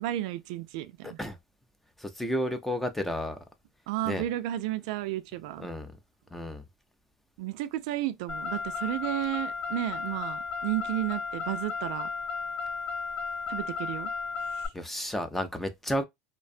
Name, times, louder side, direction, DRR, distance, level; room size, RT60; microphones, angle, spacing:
voice 1, 0.0-1.2 3.9-5.7 7.4-12.1 13.5-14.1 14.5-14.7, right 14 dB, 75° right, 0.3 m, -32 dB
voice 2, 1.0-1.4 2.0-3.4 4.1-4.2 5.6-5.9 6.3-6.6 14.7-16.0, equal, 5° left, 0.4 m, -32 dB
Car, 8.3-14.7, left 5 dB, 45° left, 0.7 m, -34 dB
2.5 x 2.2 x 2.4 m
supercardioid pair, 140°, 4 cm